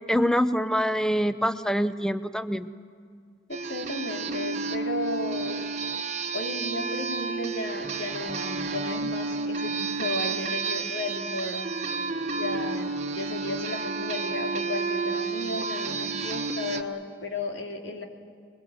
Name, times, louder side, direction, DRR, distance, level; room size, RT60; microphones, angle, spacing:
voice 1, 0.1-2.7, equal, 5° left, 12 dB, 0.6 m, -25 dB
voice 2, 3.5-5.7 6.3-12.0 12.3-18.0, left 2 dB, 90° left, 3 dB, 2.7 m, -34 dB
sound 1, 3.5-16.8, right 4 dB, 40° right, 1.2 m, -31 dB
25.5 x 22.0 x 9.1 m, 2.2 s
head